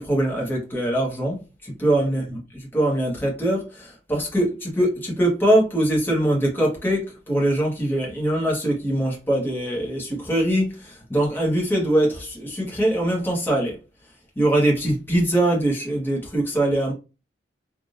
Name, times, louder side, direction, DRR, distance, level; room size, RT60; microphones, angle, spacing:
voice 1, 0.0-1.4 1.6-13.8 14.4-16.9, right 1 dB, 10° left, 1.2 m, -22 dB
3.4 x 2.5 x 2.6 m
head